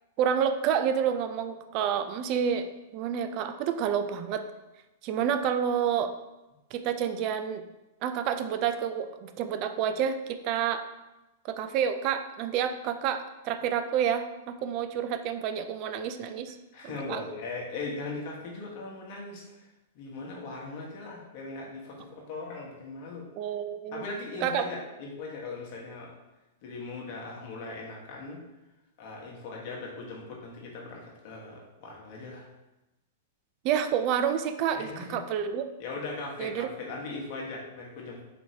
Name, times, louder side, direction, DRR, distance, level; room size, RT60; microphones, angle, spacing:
voice 1, 0.2-2.7 2.9-4.4 5.0-6.1 6.7-7.6 8.0-10.8 11.4-16.6 16.8-17.2 23.4-24.0 24.4-24.7 33.6-35.6 36.4-36.7, right 8 dB, 45° right, 9 dB, 0.3 m, -29 dB
voice 2, 16.7-19.4 19.9-23.3 23.9-26.1 26.6-28.4 29.0-32.4 34.8-35.1 35.8-38.2, left 3 dB, 55° left, -2 dB, 1.1 m, -39 dB
4.2 x 2.9 x 2.8 m, 1.0 s
hypercardioid pair, 115°, 0 cm